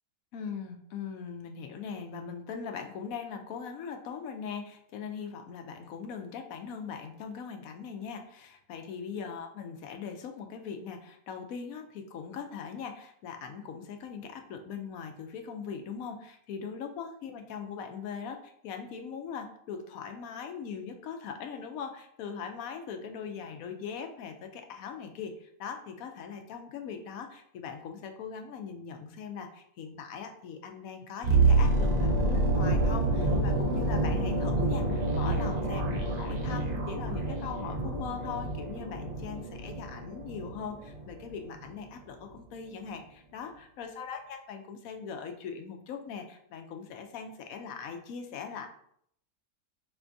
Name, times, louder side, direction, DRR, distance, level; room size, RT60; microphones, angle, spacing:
voice 1, 0.3-48.7, left 6 dB, 70° left, 5 dB, 1.0 m, -40 dB
sound 1, 31.2-41.2 41.5-41.7, right 2 dB, 50° right, 0.5 m, -28 dB
5.0 x 3.4 x 2.6 m, 0.68 s
omnidirectional pair, 1.6 m